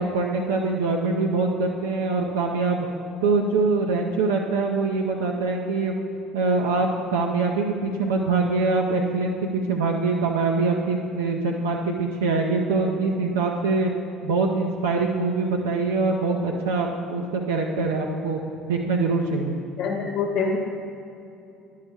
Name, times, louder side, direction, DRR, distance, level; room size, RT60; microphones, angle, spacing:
voice 1, 0.0-2.9 3.2-5.9 6.3-13.9 14.2-18.4 18.7-19.6, right 3 dB, 70° right, 0 dB, 0.5 m, -24 dB
voice 2, 19.8-20.6, left 5 dB, 50° left, 0 dB, 0.9 m, -25 dB
10.5 x 6.5 x 3.4 m, 2.7 s
figure-of-eight pair, 60°, 0 cm